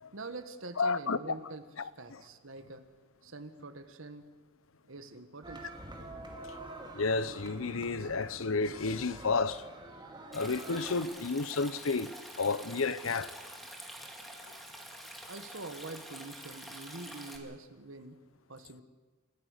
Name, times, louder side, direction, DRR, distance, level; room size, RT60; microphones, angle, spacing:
voice 1, 0.1-2.9 3.2-4.3 4.9-5.6 15.3-18.2 18.5-18.8, right 2 dB, 75° right, 1.6 m, -45 dB
voice 2, 0.8-1.2 1.8-2.2 6.9-9.7 10.3-13.4 14.5-14.6, left 4 dB, 80° left, 0.8 m, -31 dB
sound 1, 5.4-11.0, right 2 dB, 20° right, 2.5 m, -47 dB
Stream, 10.3-17.4, equal, ahead, 2.5 m, -47 dB
29.0 x 15.5 x 6.7 m
head